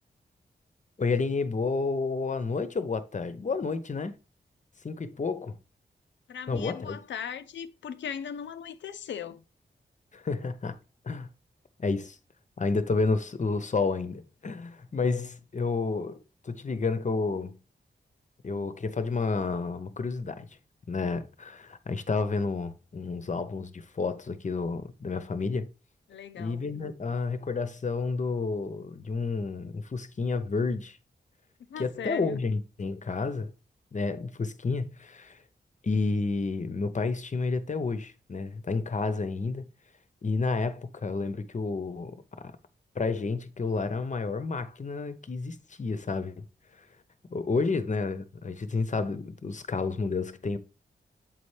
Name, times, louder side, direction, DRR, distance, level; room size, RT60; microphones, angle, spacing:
voice 1, 1.0-4.2 4.8-5.6 6.5-7.0 10.1-10.8 11.0-11.3 11.8-12.2 12.6-17.6 18.4-20.5 20.9-25.7 26.4-31.0 31.8-33.5 33.9-35.4 35.8-39.7 40.2-42.5 42.9-46.4 46.8-46.9 47.3-50.6, left 4 dB, 40° left, 0.8 m, -30 dB
voice 2, 6.3-9.4 26.1-26.6 31.7-32.4, left 8 dB, 85° left, 0.5 m, -38 dB
7.6 x 4.3 x 3.2 m
cardioid pair, 55°, 19 cm